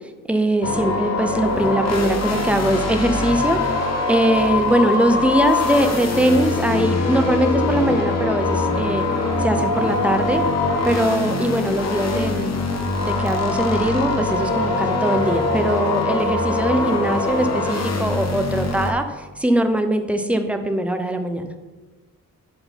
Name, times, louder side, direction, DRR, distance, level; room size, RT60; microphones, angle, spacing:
voice 1, 0.3-9.0 9.4-10.4 10.8-12.6 13.0-21.5, right 1 dB, 5° right, 7 dB, 0.5 m, -21 dB
sound 1, 0.6-18.9, left 3 dB, 50° left, 1.0 m, -23 dB
11.0 x 3.8 x 4.4 m, 1.2 s
wide cardioid pair, 175°, 33 cm